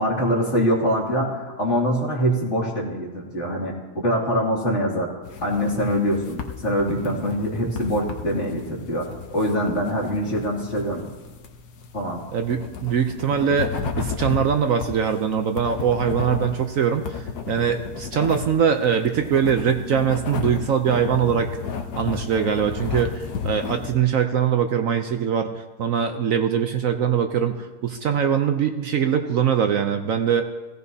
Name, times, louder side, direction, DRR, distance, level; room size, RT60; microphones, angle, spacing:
voice 1, 0.0-5.1 5.4-11.1 11.9-12.2, equal, 45° left, -4 dB, 2.9 m, -24 dB
sound 1, 5.2-23.9, left 6 dB, 75° left, 1.5 m, -33 dB
voice 2, 12.3-21.5 22.0-30.4, right 7 dB, 65° right, 6 dB, 1.0 m, -22 dB
16.5 x 16.5 x 2.8 m, 1.2 s
omnidirectional pair, 1.7 m